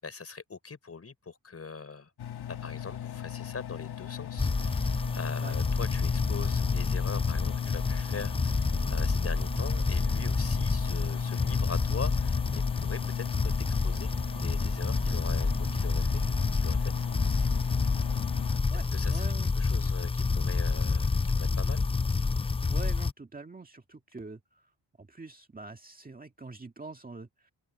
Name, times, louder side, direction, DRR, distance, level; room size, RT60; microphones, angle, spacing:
voice 1, 0.0-2.1 2.5-16.2 16.5-16.9 17.2-17.7 18.9-19.3 19.6-21.9, left 4 dB, 35° left, 5.6 m, -42 dB
Engine, 2.2-18.6, left 10 dB, 65° left, 1.3 m, -40 dB
sound 1, 4.4-23.1, left 4 dB, 15° left, 0.4 m, -28 dB
voice 2, 18.7-19.5 22.7-24.7 25.0-27.5, right 3 dB, 20° right, 1.9 m, -45 dB
open air
cardioid pair, 110°, 41 cm